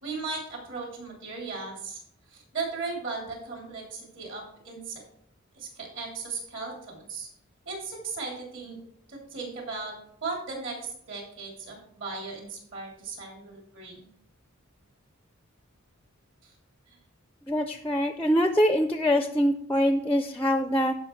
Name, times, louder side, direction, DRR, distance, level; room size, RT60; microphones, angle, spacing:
voice 1, 0.0-2.0 2.3-5.0 5.5-7.3 7.6-8.8 9.1-9.9 10.2-14.1 16.4-16.5 16.9-17.0, right 4 dB, 60° right, -1 dB, 3.3 m, -37 dB
voice 2, 17.5-20.9, equal, 10° left, 7 dB, 0.4 m, -24 dB
15.5 x 5.4 x 3.2 m, 0.69 s
head